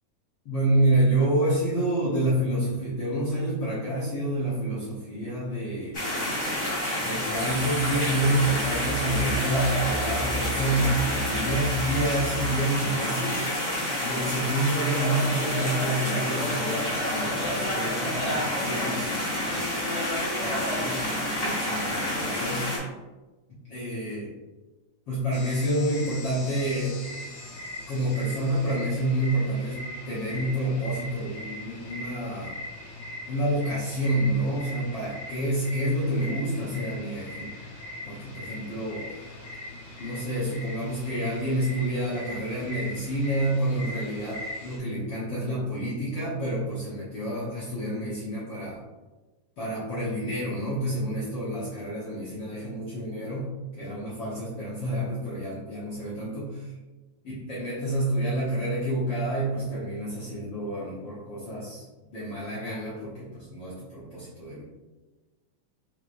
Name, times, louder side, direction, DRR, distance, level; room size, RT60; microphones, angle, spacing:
voice 1, 0.4-6.0 6.9-13.5 14.0-19.7 20.4-22.7 23.7-24.3 25.1-27.0 27.9-32.5 33.3-37.5 38.0-39.3 40.0-48.8 49.6-56.5 57.4-61.8 62.1-64.6, right 1 dB, 70° left, -10 dB, 1.1 m, -28 dB
sound 1, 5.9-22.8, left 1 dB, 45° left, 1.0 m, -28 dB
sound 2, 7.4-12.5, right 2 dB, 80° right, 1.9 m, -35 dB
sound 3, 25.3-44.8, left 1 dB, 90° left, 1.3 m, -40 dB
5.1 x 3.0 x 2.6 m, 1.2 s
omnidirectional pair, 3.8 m